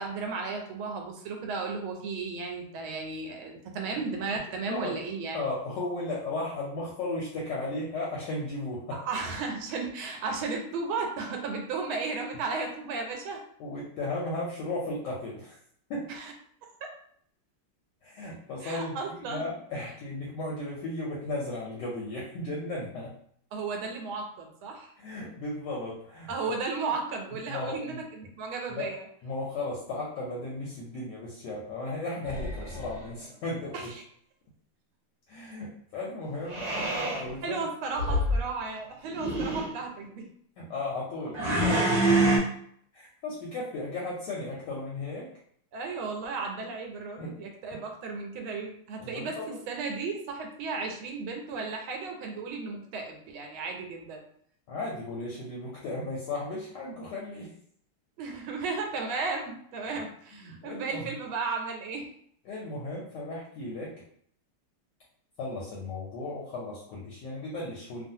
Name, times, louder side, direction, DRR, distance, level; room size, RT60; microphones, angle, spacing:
voice 1, 0.0-5.4 8.9-13.4 16.1-16.3 16.8-16.9 18.6-19.5 23.5-24.9 26.3-29.0 33.7-33.9 37.4-40.3 45.7-49.4 49.7-54.2 58.2-62.1, right 4 dB, 85° right, 2 dB, 1.4 m, -34 dB
voice 2, 4.6-5.0 5.3-9.0 13.6-15.6 15.9-16.1 18.0-23.1 25.0-26.3 27.5-28.0 28.7-28.9 29.2-33.9 35.3-37.7 40.6-42.0 42.9-45.3 47.2-47.4 47.7-47.8 49.0-49.6 54.7-57.5 60.3-61.2 62.4-64.0 65.4-68.0, left 2 dB, 70° left, -3 dB, 1.1 m, -35 dB
sound 1, 32.2-33.1 36.5-37.3 37.9-38.4 39.0-39.7 41.3-42.4, right 1 dB, 40° right, 1.2 m, -26 dB
3.1 x 2.3 x 2.6 m, 0.65 s
omnidirectional pair, 2.2 m